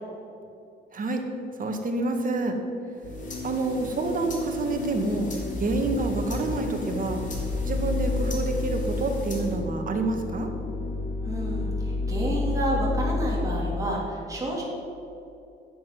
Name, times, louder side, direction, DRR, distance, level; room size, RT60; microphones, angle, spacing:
voice 1, 0.9-1.3 1.6-2.6 3.4-7.2 7.6-10.5, right 2 dB, 45° right, 3 dB, 1.9 m, -28 dB
sound 1, 2.9-9.7, left 2 dB, 40° left, 3.2 m, -43 dB
sound 2, 3.0-13.8, left 2 dB, 70° left, 2.5 m, -30 dB
voice 2, 11.2-14.6, right 1 dB, 15° right, -5 dB, 3.2 m, -30 dB
10.0 x 8.6 x 7.8 m, 2.7 s
cardioid pair, 90°, 20 cm